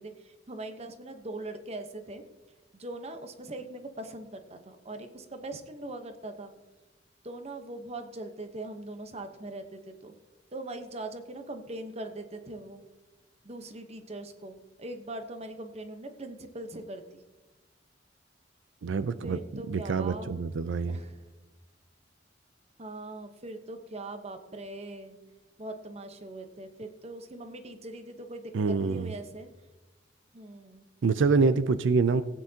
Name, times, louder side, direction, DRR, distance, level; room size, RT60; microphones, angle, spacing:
voice 1, 0.0-2.2 2.7-6.5 7.2-10.1 10.5-12.8 13.4-17.2 19.2-20.3 20.9-21.3 22.8-25.2 25.6-29.5 30.3-30.9, right 2 dB, 35° right, 7 dB, 0.9 m, -41 dB
voice 2, 18.8-19.4 19.7-21.0 28.5-29.1 31.0-32.2, right 4 dB, 85° right, 13 dB, 0.4 m, -26 dB
17.5 x 9.0 x 2.8 m, 1.1 s
head